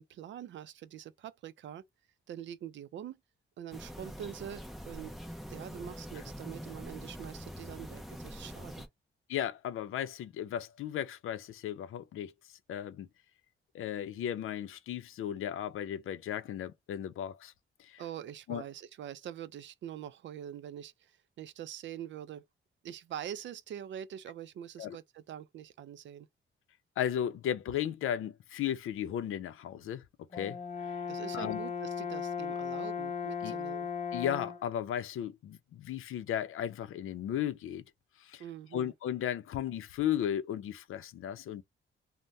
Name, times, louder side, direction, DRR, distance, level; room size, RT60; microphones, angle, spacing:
voice 1, 0.0-1.8 2.3-3.2 3.6-5.1 5.5-8.9 18.0-22.4 22.8-26.3 31.1-33.9 38.4-38.9, right 10 dB, 65° right, 0.4 m, -44 dB
sound 1, 3.7-8.9, equal, ahead, 0.6 m, -44 dB
voice 2, 9.3-12.3 12.7-13.1 13.7-17.5 17.8-18.0 18.5-18.6 24.8-25.0 27.0-30.0 30.3-30.6 31.3-31.6 33.4-33.5 34.1-37.8 38.2-38.4 38.7-41.6, left 10 dB, 85° left, 0.5 m, -35 dB
Brass instrument, 30.3-34.7, left 6 dB, 35° left, 0.7 m, -37 dB
2.6 x 2.1 x 3.2 m
wide cardioid pair, 155°, 21 cm